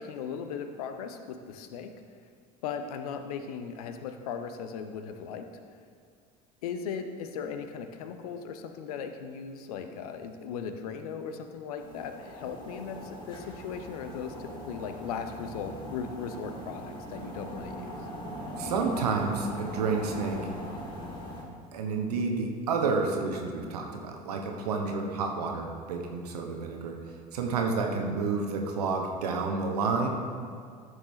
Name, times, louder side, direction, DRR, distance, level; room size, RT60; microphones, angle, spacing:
voice 1, 0.0-2.0 2.6-5.5 6.6-17.9, left 6 dB, 65° left, 8 dB, 0.8 m, -38 dB
sound 1, 11.8-21.4, equal, 20° left, 2.2 m, -40 dB
voice 2, 18.6-20.5 21.7-27.0 27.3-30.1, right 4 dB, 70° right, 2 dB, 1.1 m, -30 dB
14.0 x 6.5 x 3.2 m, 2.3 s
figure-of-eight pair, 70°, 21 cm